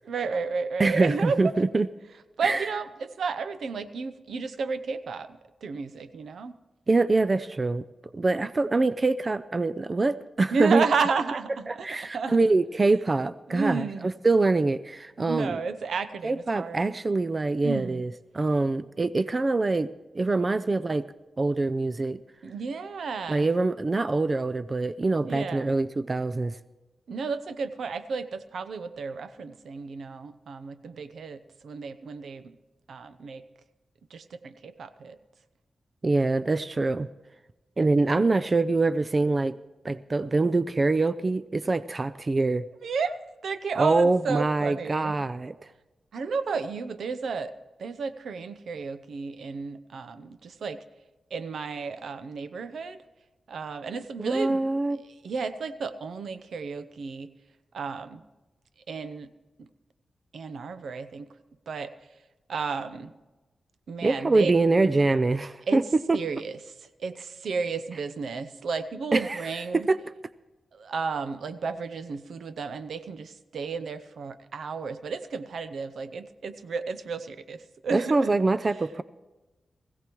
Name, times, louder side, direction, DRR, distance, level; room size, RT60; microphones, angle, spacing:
voice 1, 0.0-1.4 2.4-6.6 10.5-11.9 12.1-12.4 13.5-14.1 15.2-16.9 17.6-18.0 22.4-23.5 25.3-25.7 27.1-32.6 32.9-33.4 34.1-35.2 42.8-45.2 46.1-47.5 47.8-50.8 51.3-53.0 53.5-54.6 55.0-57.3 57.7-58.2 58.9-59.3 59.6-59.7 60.3-61.3 61.7-61.9 62.5-63.1 63.9-64.5 65.7-65.8 66.1-69.9 70.7-78.4, right 5 dB, 80° right, 13 dB, 0.7 m, -32 dB
voice 2, 0.8-1.9 2.4-2.7 6.9-7.8 8.1-10.8 11.7-15.6 16.2-21.0 21.4-22.2 23.3-26.6 36.0-37.1 37.8-39.6 39.8-42.6 43.8-45.5 54.2-55.0 64.0-65.8 66.1-66.2 69.1-69.4 69.9-70.0 77.9-79.0, right 3 dB, 35° right, 14 dB, 0.4 m, -24 dB
20.5 x 16.0 x 3.1 m, 1.1 s
wide cardioid pair, 95°, 0 cm